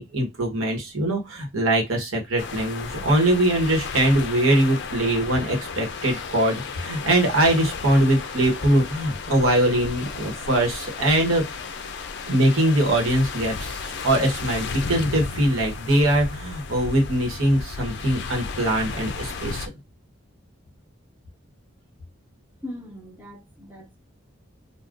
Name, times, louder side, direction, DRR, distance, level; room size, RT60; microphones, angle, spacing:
voice 1, 0.0-11.4 12.3-19.6, right 1 dB, 80° right, 1.1 m, -22 dB
sound 1, 2.4-19.7, left 5 dB, 55° left, 0.4 m, -34 dB
voice 2, 22.6-24.0, left 1 dB, 10° right, 0.8 m, -39 dB
2.5 x 2.3 x 3.6 m
head